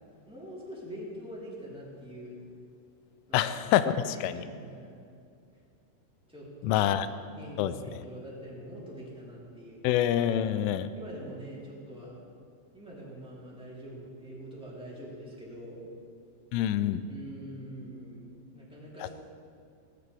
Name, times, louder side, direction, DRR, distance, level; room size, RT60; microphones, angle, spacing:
voice 1, 0.2-2.4 3.3-3.5 4.0-4.9 6.3-6.8 7.3-9.8 10.9-12.2 12.7-15.8 17.1-18.3 18.5-19.1, equal, ahead, -8 dB, 2.9 m, -44 dB
voice 2, 3.3-4.4 6.6-7.1 7.6-7.7 9.8-10.9 16.5-17.1, left 11 dB, 90° left, 12 dB, 3.1 m, -26 dB
19.0 x 15.0 x 3.5 m, 2.4 s
omnidirectional pair, 5.6 m